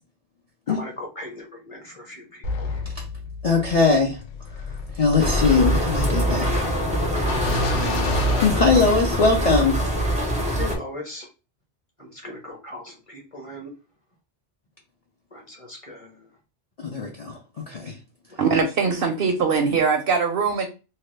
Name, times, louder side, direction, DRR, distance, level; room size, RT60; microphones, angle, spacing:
voice 1, 0.7-2.8 10.6-11.3 12.0-13.7 15.3-16.3 18.3-18.4, left 1 dB, 30° left, 0 dB, 0.9 m, -38 dB
sound 1, 2.4-9.4, left 3 dB, 80° left, 0.9 m, -30 dB
voice 2, 3.4-4.2 4.9-6.7 8.4-9.8 16.8-17.4 17.7-18.0, left 4 dB, 45° left, -1 dB, 0.5 m, -20 dB
sound 2, 5.2-10.8, right 1 dB, 10° right, 0.3 m, -24 dB
voice 3, 18.4-20.7, right 5 dB, 60° right, 4 dB, 0.7 m, -21 dB
2.8 x 2.2 x 3.2 m, 0.31 s
omnidirectional pair, 1.2 m